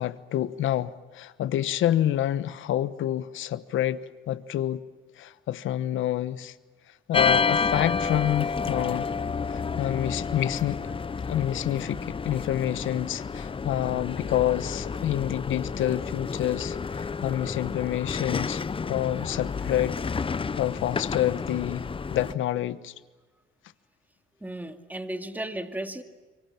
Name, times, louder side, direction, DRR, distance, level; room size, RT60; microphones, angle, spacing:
voice 1, 0.0-4.8 5.2-6.5 7.1-9.1 9.5-10.8 11.3-18.6 18.9-20.0 20.6-22.9, left 12 dB, 80° left, 1.1 m, -28 dB
sound 1, 7.1-22.3, left 5 dB, 25° left, 0.7 m, -30 dB
voice 2, 24.4-26.0, right 1 dB, 10° right, 2.3 m, -34 dB
27.0 x 24.0 x 7.4 m
cardioid pair, 90°, 20 cm